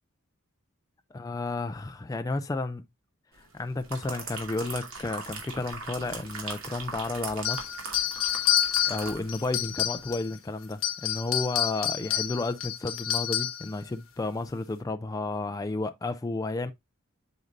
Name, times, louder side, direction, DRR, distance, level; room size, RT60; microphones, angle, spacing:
voice 1, 1.1-2.8 3.4-7.8 8.9-16.7, left 2 dB, 15° left, 0.3 m, -32 dB
sound 1, 3.6-9.6 9.9-10.1, right 4 dB, 85° right, 2.4 m, -39 dB
sound 2, 7.4-10.3 10.7-13.7, left 11 dB, 70° left, 1.4 m, -28 dB
7.9 x 5.2 x 2.5 m
head